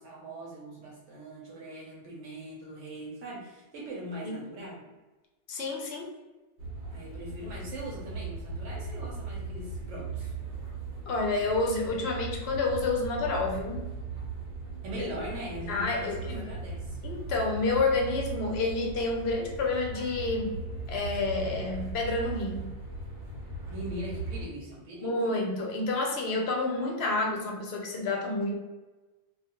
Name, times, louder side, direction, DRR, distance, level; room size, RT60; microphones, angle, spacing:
voice 1, 0.0-4.8 6.9-10.3 14.8-17.0 23.7-25.4, right 1 dB, 85° right, -3 dB, 1.0 m, -41 dB
voice 2, 5.5-6.1 11.1-13.9 15.0-15.1 15.7-16.5 17.0-20.6 20.9-22.7 25.0-28.6, left 3 dB, 65° left, 1 dB, 0.8 m, -29 dB
sound 1, 6.6-24.5, right 3 dB, 65° right, 1.1 m, -38 dB
2.4 x 2.3 x 2.8 m, 1.1 s
omnidirectional pair, 1.2 m